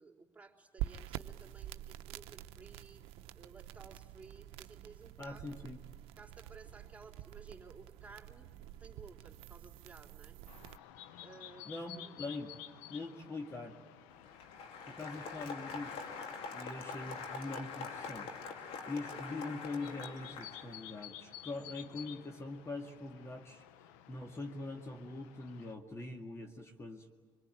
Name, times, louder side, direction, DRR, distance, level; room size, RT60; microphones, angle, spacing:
voice 1, 0.0-3.0 3.3-5.4 6.2-8.5 8.8-10.4 11.2-11.7 12.0-12.1 16.6-16.9, right 4 dB, 15° right, -2 dB, 3.7 m, -56 dB
sound 1, 0.8-10.8, right 13 dB, 75° right, 0.7 m, -47 dB
voice 2, 5.2-5.8 11.7-12.5 12.9-13.7 14.9-16.1 16.5-18.3 18.9-23.6 24.1-27.1, left 2 dB, 30° left, 2 dB, 2.2 m, -43 dB
sound 2, 10.5-25.7, left 11 dB, 85° left, 0.8 m, -54 dB
Applause, 14.1-21.0, left 5 dB, 70° left, 2.4 m, -44 dB
25.0 x 22.5 x 9.1 m, 1.4 s
supercardioid pair, 70°, 10 cm